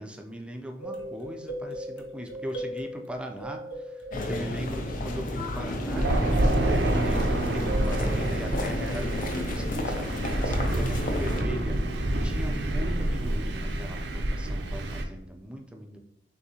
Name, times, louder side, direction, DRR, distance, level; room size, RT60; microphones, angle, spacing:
voice 1, 0.0-16.0, right 1 dB, 5° right, 3 dB, 0.4 m, -39 dB
sound 1, 0.8-5.1 5.6-9.2, equal, 80° left, 0.7 m, -39 dB
sound 2, 4.1-11.4, left 1 dB, 50° left, 0.6 m, -32 dB
Thunder, 6.0-15.0, right 1 dB, 65° right, 0.5 m, -27 dB
6.4 x 2.7 x 2.8 m, 0.82 s
head